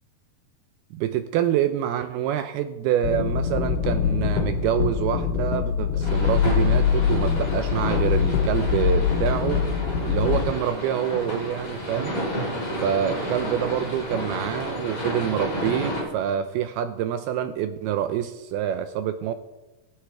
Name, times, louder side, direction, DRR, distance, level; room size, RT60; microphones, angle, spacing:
voice 1, 0.9-9.7 10.0-12.2 12.8-19.3, right 10 dB, 80° right, 10 dB, 2.4 m, -26 dB
sound 1, 3.0-10.5, left 7 dB, 80° left, 2.9 m, -23 dB
sound 2, 6.0-16.0, equal, 30° left, 6.5 m, -31 dB
21.0 x 8.1 x 4.5 m, 1.1 s
omnidirectional pair, 4.8 m